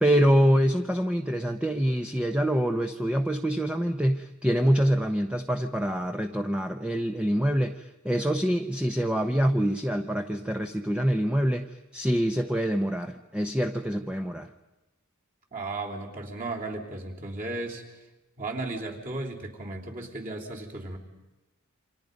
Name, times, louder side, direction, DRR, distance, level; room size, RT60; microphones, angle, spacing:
voice 1, 0.0-11.7 11.9-14.5, equal, 5° right, 6 dB, 0.7 m, -25 dB
voice 2, 15.5-17.8 18.4-21.0, right 2 dB, 40° right, -1 dB, 3.4 m, -35 dB
29.5 x 26.0 x 5.3 m, 1.0 s
head